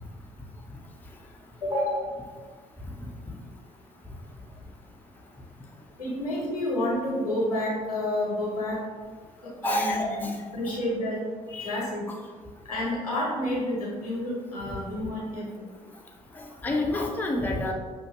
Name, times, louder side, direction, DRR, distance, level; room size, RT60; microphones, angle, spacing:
voice 1, 1.6-2.0 6.0-8.8 9.6-10.3 10.5-11.2 11.6-12.1 12.6-15.7, left 1 dB, 85° left, -4 dB, 0.9 m, -29 dB
voice 2, 9.6-10.3 11.5-11.8 16.6-17.7, left 1 dB, 10° left, 0 dB, 0.6 m, -28 dB
5.5 x 2.5 x 3.0 m, 1.5 s
figure-of-eight pair, 45°, 18 cm